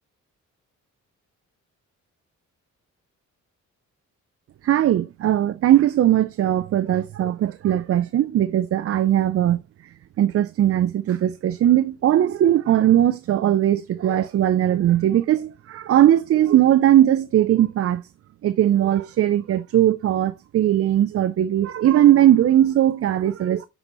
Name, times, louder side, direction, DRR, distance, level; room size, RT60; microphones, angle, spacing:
voice 1, 4.6-18.0 18.4-23.7, right 12 dB, 50° right, 0.4 m, -19 dB
8.8 x 4.1 x 3.0 m
cardioid pair, 130°, 31 cm